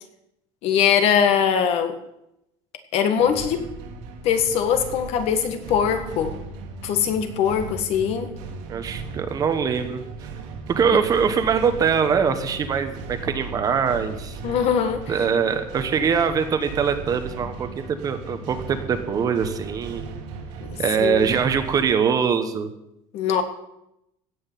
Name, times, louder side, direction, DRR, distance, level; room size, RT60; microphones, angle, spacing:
voice 1, 0.6-2.0 2.9-3.7 4.2-6.4 6.8-8.3 10.9-11.0 14.4-15.1 20.6-21.3 23.1-23.4, left 8 dB, 50° left, 8 dB, 1.7 m, -22 dB
sound 1, 3.2-21.9, right 4 dB, 80° right, 2.9 m, -37 dB
voice 2, 8.7-10.0 10.7-14.4 15.1-20.1 20.8-22.7, right 6 dB, 30° right, 9 dB, 1.1 m, -23 dB
16.5 x 6.3 x 9.1 m, 0.84 s
cardioid pair, 170°, 13 cm